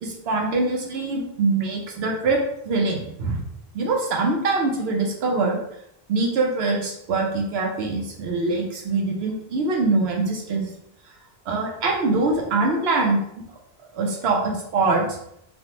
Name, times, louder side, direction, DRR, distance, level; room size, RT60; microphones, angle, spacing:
voice 1, 0.0-3.4 3.7-5.6 6.1-10.7 11.5-13.4 13.9-15.2, right 3 dB, 80° right, 1 dB, 0.9 m, -23 dB
3.2 x 2.1 x 2.9 m, 0.75 s
omnidirectional pair, 1.0 m